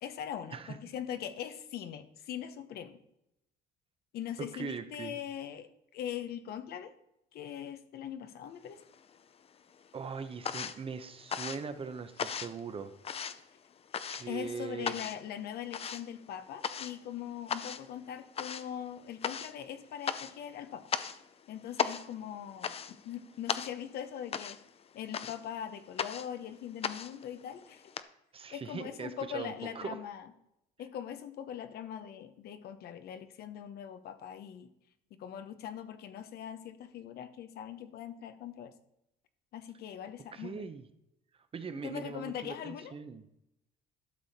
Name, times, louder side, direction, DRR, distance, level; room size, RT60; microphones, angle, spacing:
voice 1, 0.0-3.0 4.1-6.9 7.3-8.9 14.3-20.9 21.5-24.6 24.9-27.8 28.5-30.3 30.8-34.7 35.1-38.7 39.5-40.7 41.8-42.9, left 9 dB, 70° left, 10 dB, 0.9 m, -41 dB
voice 2, 4.4-5.2 9.9-12.9 14.1-15.0 28.3-30.0 40.3-40.8 41.5-43.2, right 5 dB, 35° right, 10 dB, 0.8 m, -40 dB
sound 1, 8.7-9.5 9.7-28.0, left 7 dB, 35° left, 0.6 m, -38 dB
12.0 x 6.3 x 4.2 m, 0.82 s
cardioid pair, 110°, 17 cm